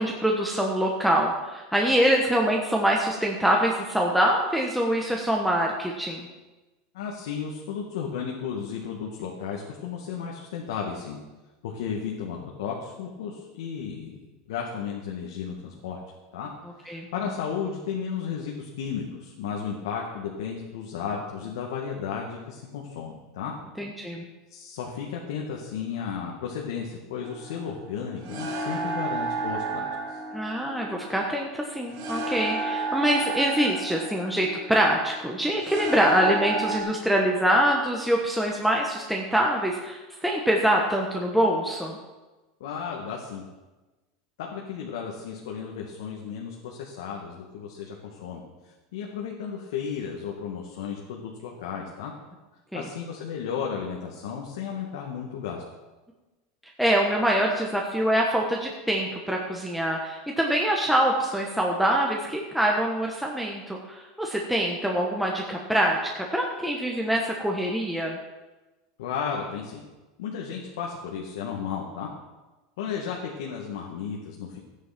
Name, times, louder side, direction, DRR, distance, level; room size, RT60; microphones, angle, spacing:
voice 1, 0.0-6.3 16.9-17.1 23.8-24.2 30.3-42.0 52.7-52.9 56.8-68.2, equal, ahead, -1 dB, 1.2 m, -24 dB
voice 2, 6.9-11.2 11.6-16.0 16.3-16.5 16.8-23.5 24.5-30.2 42.6-43.5 44.4-48.4 48.9-52.1 52.7-55.6 69.0-69.8 70.2-72.1 72.8-74.6, left 7 dB, 80° left, -1 dB, 2.0 m, -34 dB
sound 1, 27.2-36.8, right 3 dB, 55° right, 3.2 m, -32 dB
13.5 x 9.6 x 6.0 m, 1.2 s
supercardioid pair, 150°, 2 cm